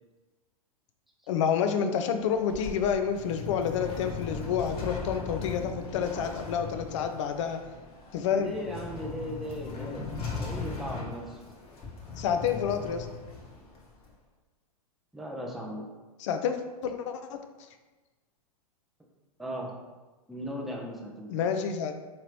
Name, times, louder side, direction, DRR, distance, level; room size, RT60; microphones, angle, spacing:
voice 1, 1.3-7.6 8.1-8.5 12.2-13.1 16.2-17.4 21.3-21.9, left 7 dB, 55° left, 7 dB, 0.5 m, -29 dB
sound 1, 2.2-14.1, left 4 dB, 30° left, 1.1 m, -39 dB
voice 2, 8.3-10.1 10.4-11.4 15.1-15.9 19.4-19.8 20.3-21.5, equal, ahead, -1 dB, 0.5 m, -37 dB
3.7 x 3.0 x 3.1 m, 1.2 s
hypercardioid pair, 105°, 19 cm